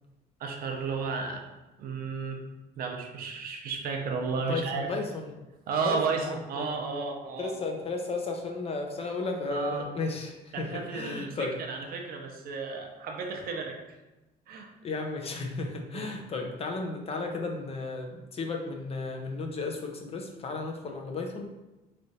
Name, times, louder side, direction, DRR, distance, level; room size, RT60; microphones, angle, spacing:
voice 1, 0.4-1.4 1.8-2.4 2.8-4.9 5.7-7.5 9.5-9.9 10.5-13.8 14.5-14.7 15.9-16.1, right 5 dB, 60° right, 2 dB, 0.7 m, -33 dB
voice 2, 4.4-5.3 5.8-6.7 7.4-11.6 14.8-21.5, left 3 dB, 35° left, 2 dB, 0.6 m, -34 dB
3.3 x 2.5 x 4.1 m, 1.0 s
cardioid pair, 110°, 17 cm